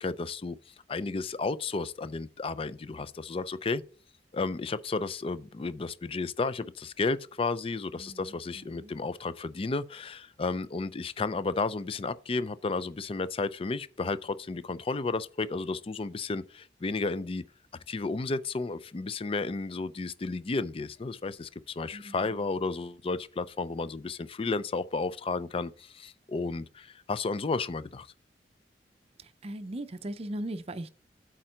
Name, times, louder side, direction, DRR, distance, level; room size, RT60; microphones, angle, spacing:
voice 1, 0.0-3.8 4.3-17.4 17.9-28.1, left 3 dB, 30° left, 0.4 m, -32 dB
voice 2, 7.9-8.9 21.9-22.4 29.2-30.9, right 1 dB, 35° right, 0.5 m, -39 dB
8.7 x 3.8 x 5.6 m
head